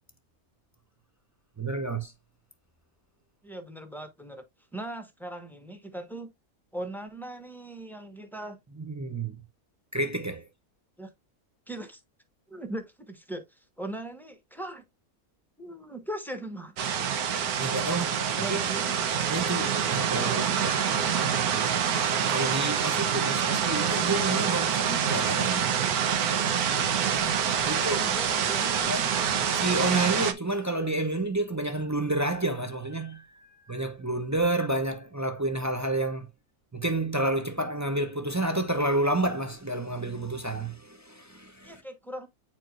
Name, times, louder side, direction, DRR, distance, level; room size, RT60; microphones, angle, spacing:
voice 1, 1.6-2.1 8.8-9.4 9.9-10.5 17.6-18.6 19.3-20.7 22.3-26.0 27.6-28.0 28.9-29.1 29.6-36.3 36.7-41.8, right 2 dB, 20° right, 0.5 m, -30 dB
voice 2, 3.4-4.4 4.7-6.3 6.7-8.6 11.0-11.1 11.7-12.0 12.5-14.8 15.6-16.9 18.4-18.8 20.2-20.6 27.6-28.9 41.6-42.3, right 1 dB, ahead, 1.0 m, -39 dB
sound 1, 16.8-30.3, right 8 dB, 80° right, 1.4 m, -26 dB
8.9 x 4.5 x 2.5 m
omnidirectional pair, 1.5 m